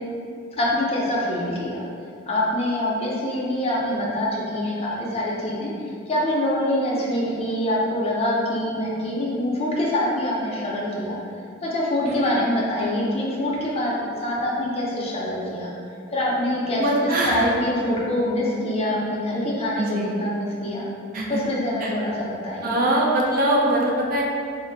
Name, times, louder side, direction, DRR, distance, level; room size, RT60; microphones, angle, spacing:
voice 1, 0.5-1.8 2.3-5.7 6.1-11.2 11.6-15.7 16.1-20.9 21.3-22.8, left 1 dB, 30° left, -4 dB, 0.4 m, -25 dB
voice 2, 12.1-12.4 16.8-17.5 19.8-20.2 21.1-21.4 21.8-21.9 22.6-24.2, right 1 dB, 45° right, -2 dB, 0.4 m, -22 dB
2.5 x 2.1 x 3.8 m, 2.4 s
head